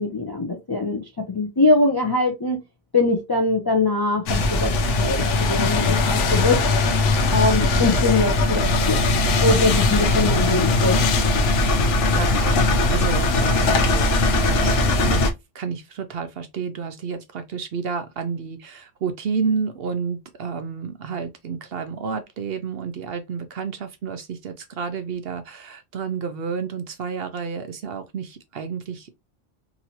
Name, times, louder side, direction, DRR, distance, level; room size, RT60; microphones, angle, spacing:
voice 1, 0.0-2.6 2.9-6.6 7.3-9.1 9.4-11.0, left 2 dB, 40° left, 0.3 m, -22 dB
sound 1, 4.3-15.3, left 2 dB, 75° left, 0.9 m, -20 dB
voice 2, 12.1-15.2 15.5-29.1, right 5 dB, 65° right, 0.7 m, -30 dB
2.9 x 2.7 x 2.8 m
omnidirectional pair, 1.3 m